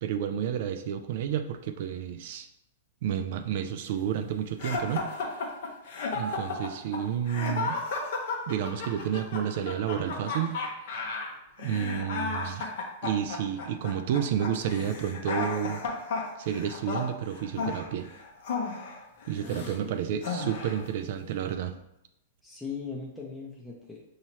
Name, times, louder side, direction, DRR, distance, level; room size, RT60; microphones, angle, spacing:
voice 1, 0.0-2.5 3.0-5.1 6.1-7.8 8.5-10.6 11.6-12.7 13.0-15.8 16.4-18.1 19.3-21.8, right 9 dB, 60° right, 7 dB, 0.3 m, -30 dB
sound 1, 4.6-19.8 20.2-20.9, left 4 dB, 65° left, 0.9 m, -34 dB
voice 2, 19.4-20.1 22.4-24.0, left 4 dB, 5° left, -5 dB, 0.6 m, -40 dB
5.5 x 2.8 x 3.0 m, 0.83 s
hypercardioid pair, 130°, 0 cm